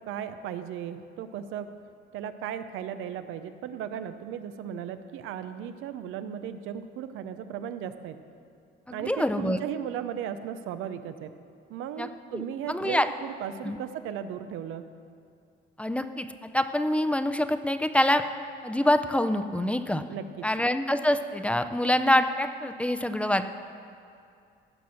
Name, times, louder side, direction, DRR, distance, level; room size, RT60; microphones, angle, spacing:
voice 1, 0.0-1.7 2.1-8.2 8.9-11.3 11.7-14.9 20.1-20.5, right 9 dB, 90° right, 10 dB, 0.6 m, -36 dB
voice 2, 8.9-9.6 12.0-12.1 12.3-13.1 13.6-13.8 15.8-16.3 16.5-18.2 18.6-20.0 20.4-23.4, left 1 dB, 5° left, 9 dB, 0.5 m, -25 dB
16.0 x 6.1 x 6.3 m, 2.5 s
cardioid pair, 105°, 20 cm